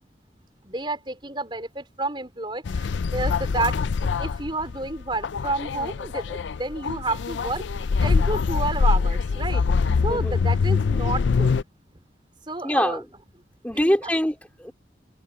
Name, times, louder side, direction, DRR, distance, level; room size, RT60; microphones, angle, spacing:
voice 1, 0.6-2.9 3.1-9.6 10.0-11.6 12.5-13.0 13.7-14.1, right 2 dB, 25° right, 4.7 m, -30 dB
sound 1, 2.7-11.6, left 5 dB, 85° left, 0.4 m, -24 dB
voice 2, 10.1-10.4 12.6-13.0 13.6-14.7, equal, 10° left, 3.3 m, -24 dB
head